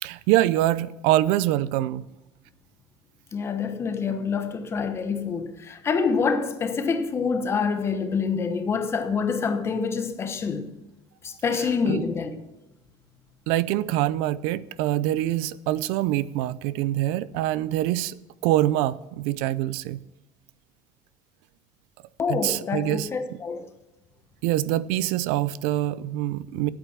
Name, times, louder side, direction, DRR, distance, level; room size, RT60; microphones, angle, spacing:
voice 1, 0.0-2.0 11.9-12.0 13.5-18.2 18.4-20.0 22.3-23.1 24.4-26.7, right 14 dB, 85° right, 0.5 m, -24 dB
voice 2, 3.3-10.7 11.2-12.3 22.2-23.7, left 5 dB, 25° left, 1.2 m, -26 dB
9.2 x 8.7 x 7.4 m
cardioid pair, 145°, 10 cm